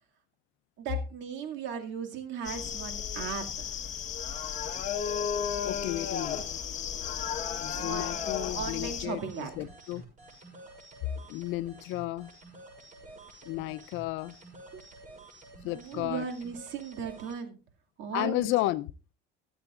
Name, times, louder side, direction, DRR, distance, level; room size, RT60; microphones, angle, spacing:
voice 1, 0.8-3.4 7.7-9.5 14.7-14.8 15.6-17.6 18.0-18.5, right 6 dB, 65° right, 2.3 m, -37 dB
sound 1, 2.4-9.1, left 8 dB, 40° left, 1.4 m, -34 dB
voice 2, 5.6-6.4 7.5-10.0 11.3-12.3 13.5-14.3 15.6-16.3 18.1-18.9, left 17 dB, 75° left, 0.6 m, -33 dB
sound 2, 9.0-17.4, right 2 dB, 40° right, 6.7 m, -50 dB
23.5 x 8.0 x 2.5 m
cardioid pair, 160°, 20 cm